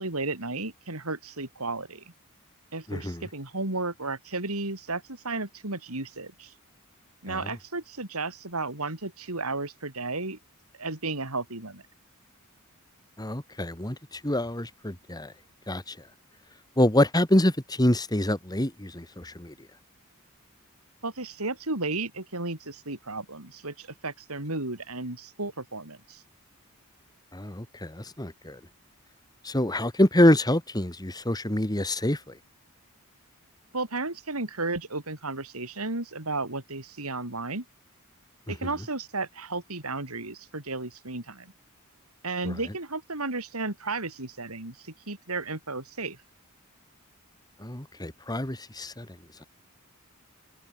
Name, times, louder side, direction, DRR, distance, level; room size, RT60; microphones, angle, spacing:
voice 1, 0.0-2.0 2.7-6.5 7.2-10.4 10.8-11.8 21.0-26.2 33.7-37.6 38.5-41.5 42.2-46.2, right 3 dB, 80° right, 4.5 m, -33 dB
voice 2, 2.9-3.2 7.3-7.4 13.2-14.0 14.2-15.3 15.7-15.9 16.8-19.5 27.3-28.6 29.4-32.2 42.4-42.5 47.6-49.1, left 1 dB, 20° left, 2.3 m, -25 dB
head